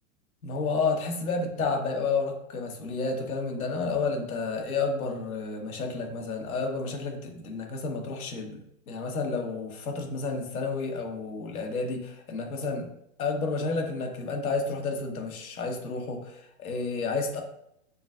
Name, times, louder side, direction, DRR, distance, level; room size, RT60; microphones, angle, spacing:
voice 1, 0.4-8.6 8.9-12.9 13.2-17.4, left 4 dB, 75° left, 2 dB, 1.3 m, -31 dB
6.7 x 2.6 x 2.5 m, 0.76 s
hypercardioid pair, 130°, 43 cm